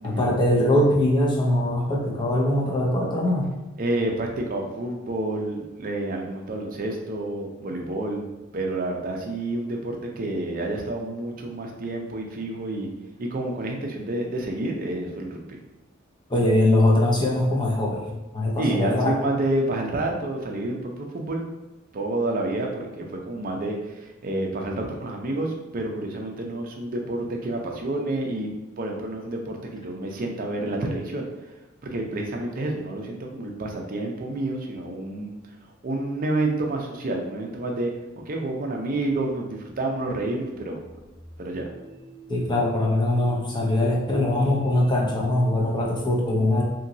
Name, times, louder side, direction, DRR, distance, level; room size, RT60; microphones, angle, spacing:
voice 1, 0.0-3.5 16.3-19.2 42.3-46.6, left 1 dB, 20° left, -2 dB, 0.5 m, -22 dB
voice 2, 3.8-8.2 8.5-12.9 13.2-15.6 18.6-21.5 21.9-28.5 28.8-31.3 31.8-35.3 35.8-37.9 38.3-40.8 41.4-41.7, right 2 dB, 40° right, 1 dB, 0.5 m, -29 dB
sound 1, 39.1-45.8, right 3 dB, 40° left, 1.3 m, -47 dB
2.9 x 2.8 x 2.6 m, 1.1 s
head